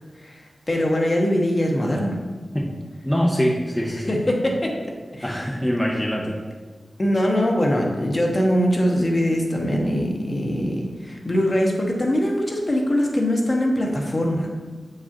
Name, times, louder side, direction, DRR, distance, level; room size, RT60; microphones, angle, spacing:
voice 1, 0.7-2.1 4.1-4.7 5.1-5.3 7.0-14.5, equal, 35° left, 0 dB, 1.0 m, -22 dB
voice 2, 1.8-2.1 2.5-2.8 3.0-4.2 5.2-6.4, equal, 10° left, -2 dB, 0.7 m, -24 dB
7.2 x 4.9 x 2.9 m, 1.4 s
wide cardioid pair, 65°, 0 cm